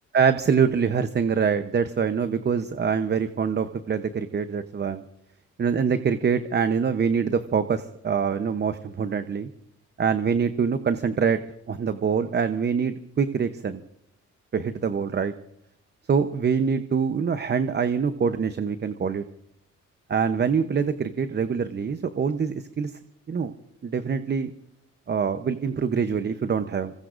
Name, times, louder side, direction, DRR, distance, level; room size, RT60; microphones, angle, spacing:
voice 1, 0.1-5.0 5.6-9.5 10.0-11.4 11.7-13.8 14.5-15.3 16.1-19.2 20.1-22.9 23.3-23.5 23.8-24.5 25.1-26.9, right 6 dB, 35° right, 10 dB, 0.8 m, -24 dB
26.0 x 19.5 x 2.6 m, 0.76 s
cardioid pair, 90°, 30 cm